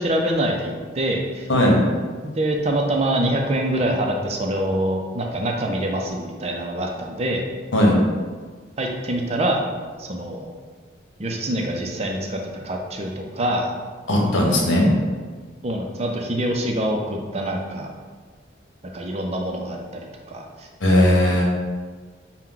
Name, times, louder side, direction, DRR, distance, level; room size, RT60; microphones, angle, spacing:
voice 1, 0.0-1.5 2.4-7.4 8.8-9.6 10.0-10.5 11.2-13.7 15.6-17.9 18.9-19.8 20.3-20.7, right 1 dB, 30° right, 1 dB, 0.5 m, -25 dB
voice 2, 1.5-1.8 7.7-8.0 14.1-14.9 20.8-21.4, left 1 dB, 75° left, -2 dB, 1.0 m, -17 dB
5.8 x 2.2 x 3.8 m, 1.5 s
head